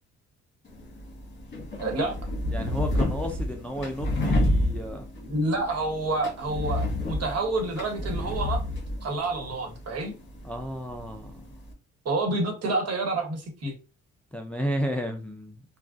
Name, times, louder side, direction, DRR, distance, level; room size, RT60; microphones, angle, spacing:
sound 1, 0.7-11.7, left 1 dB, 40° left, 1.4 m, -30 dB
voice 1, 1.8-2.1 5.2-8.6 9.0-10.1 12.0-13.7, right 2 dB, 55° right, 1.3 m, -28 dB
voice 2, 2.5-5.1 10.4-11.4 14.3-15.6, equal, 5° left, 0.4 m, -32 dB
3.4 x 2.3 x 2.5 m
cardioid pair, 90°, 30 cm